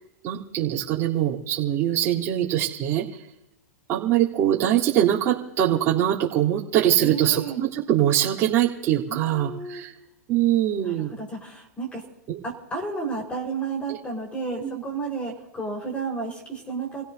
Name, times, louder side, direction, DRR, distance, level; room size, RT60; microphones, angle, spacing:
voice 1, 0.2-3.0 3.9-9.9 10.3-11.1 12.3-12.4 14.6-14.8, right 11 dB, 30° right, -6 dB, 3.7 m, -23 dB
voice 2, 7.0-7.6 9.1-9.8 10.8-12.0 12.4-17.0, right 4 dB, 15° left, 1 dB, 5.0 m, -32 dB
29.0 x 17.0 x 2.8 m, 0.87 s
hypercardioid pair, 130°, 9 cm